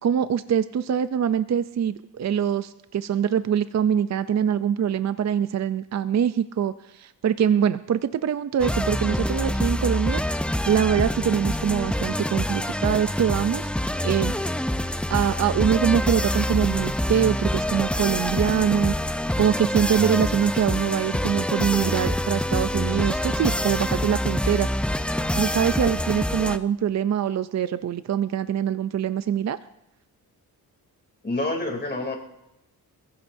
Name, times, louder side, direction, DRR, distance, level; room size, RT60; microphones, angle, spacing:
voice 1, 0.0-14.4 15.1-24.7 25.2-29.6, right 8 dB, 45° right, 12 dB, 0.5 m, -24 dB
sound 1, 8.6-26.6, left 1 dB, 5° left, 0.6 m, -26 dB
voice 2, 31.2-32.2, left 2 dB, 25° left, 1 dB, 3.1 m, -27 dB
27.5 x 15.5 x 2.7 m, 0.87 s
cardioid pair, 100°, 38 cm